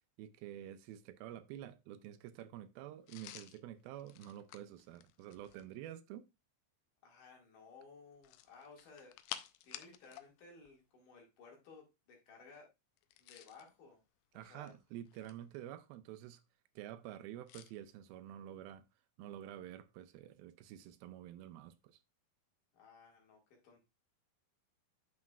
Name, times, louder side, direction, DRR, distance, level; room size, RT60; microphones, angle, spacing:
voice 1, 0.2-6.3 14.3-16.4 16.8-18.9 19.2-22.0, right 12 dB, 80° right, 2.4 m, -49 dB
sound 1, 3.1-5.7 8.2-10.3 10.6-10.7 13.0-13.7 14.5-15.6 17.5-17.7, left 13 dB, 80° left, 2.1 m, -51 dB
voice 2, 7.0-9.2 9.6-12.7 13.2-14.0 14.3-14.7 22.7-23.8, left 4 dB, 60° left, 3.4 m, -58 dB
9.5 x 6.4 x 2.3 m
omnidirectional pair, 4.4 m